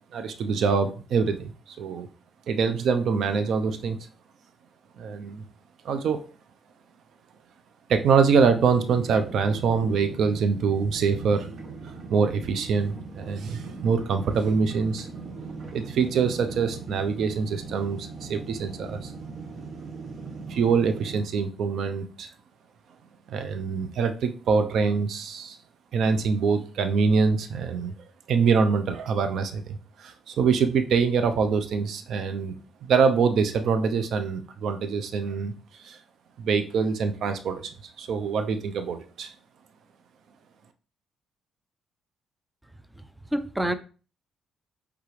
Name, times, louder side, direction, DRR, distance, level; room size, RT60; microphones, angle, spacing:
voice 1, 0.1-2.1 2.5-4.0 5.0-5.4 5.8-6.3 7.9-11.5 11.8-15.1 15.7-19.1 20.5-22.3 23.3-25.6 25.9-27.9 28.3-35.5 35.8-36.0 36.4-37.7 38.0-39.3, right 5 dB, 70° right, 0.7 m, -24 dB
sound 1, 8.2-21.2, right 4 dB, 50° right, 1.2 m, -40 dB
voice 2, 42.9-43.7, right 1 dB, 10° right, 0.6 m, -28 dB
8.2 x 3.6 x 3.3 m
cardioid pair, 90°, 0 cm